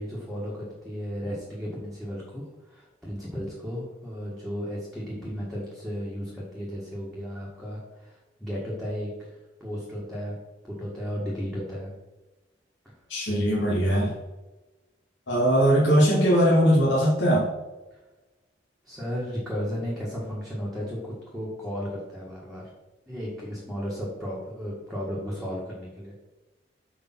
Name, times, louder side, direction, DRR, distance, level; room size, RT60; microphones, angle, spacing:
voice 1, 0.0-9.3 9.6-10.3 10.6-11.9 17.9-18.0 18.8-22.7 23.1-26.1, equal, ahead, -6 dB, 1.7 m, -34 dB
voice 2, 13.1-14.1 15.3-17.5, equal, 85° left, -6 dB, 2.1 m, -20 dB
6.8 x 5.0 x 5.9 m, 1.1 s
head